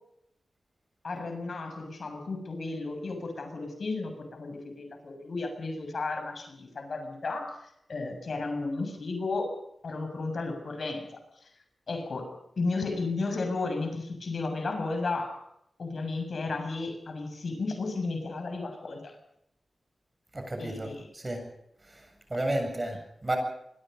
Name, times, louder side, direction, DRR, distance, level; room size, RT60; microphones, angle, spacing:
voice 1, 1.0-9.5 9.8-11.1 11.4-11.5 11.9-12.3 12.6-15.4 15.8-19.2 20.6-21.1, left 3 dB, 55° left, 6 dB, 7.2 m, -33 dB
voice 2, 20.3-21.5 21.8-23.4, right 1 dB, 20° right, 5 dB, 7.6 m, -33 dB
26.5 x 24.0 x 5.4 m, 0.78 s
wide cardioid pair, 150°, 0 cm